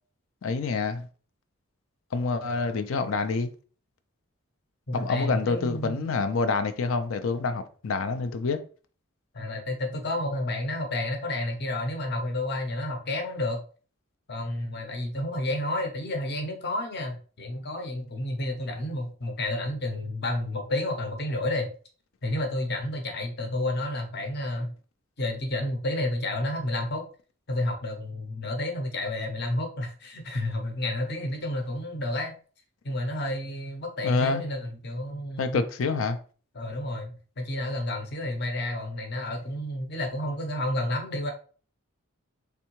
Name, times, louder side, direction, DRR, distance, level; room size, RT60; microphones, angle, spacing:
voice 1, 0.4-1.1 2.1-3.5 4.9-8.6 34.0-34.4 35.4-36.2, left 4 dB, 70° left, 0.4 m, -27 dB
voice 2, 2.4-2.8 4.9-6.0 9.3-13.6 14.3-21.7 22.2-24.7 25.2-27.1 27.5-32.3 32.8-35.6 36.5-41.3, left 1 dB, 50° left, 0.8 m, -30 dB
3.5 x 3.3 x 3.0 m
head